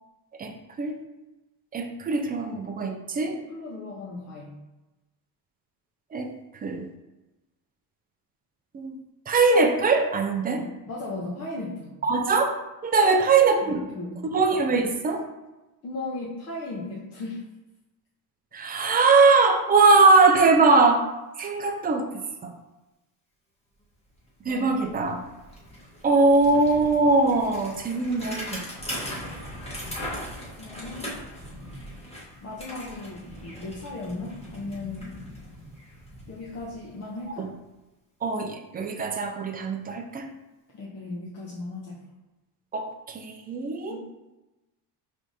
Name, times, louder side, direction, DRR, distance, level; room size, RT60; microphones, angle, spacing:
voice 1, 0.4-1.0 1.7-3.4 6.1-6.3 6.6-6.9 8.7-8.9 9.3-10.6 12.0-12.6 12.8-13.8 14.3-15.2 18.5-21.0 21.4-22.1 22.4-22.5 24.5-25.2 26.0-28.7 37.4-37.5 38.2-40.3 42.7-44.0, right 3 dB, 25° right, 4 dB, 0.4 m, -21 dB
voice 2, 3.3-4.6 10.6-12.0 13.0-14.2 15.8-17.4 24.5-24.7 25.0-25.1 30.6-31.2 32.4-35.1 36.3-37.5 40.7-42.1 43.9-44.0, left 2 dB, 40° left, -4 dB, 0.7 m, -36 dB
Bicycle, 24.1-24.2 24.4-37.3, equal, 15° left, 1.1 m, -40 dB
4.9 x 3.4 x 2.7 m, 1.0 s
cardioid pair, 140°, 40 cm